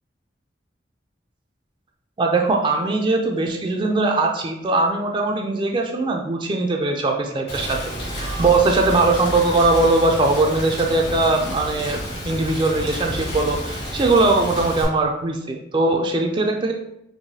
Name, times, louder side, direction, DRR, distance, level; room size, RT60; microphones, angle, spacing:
voice 1, 2.2-16.7, right 2 dB, 25° right, 2 dB, 0.3 m, -20 dB
Rain, 7.5-14.8, equal, 65° left, 1.5 m, -30 dB
4.6 x 2.6 x 2.7 m, 0.81 s
head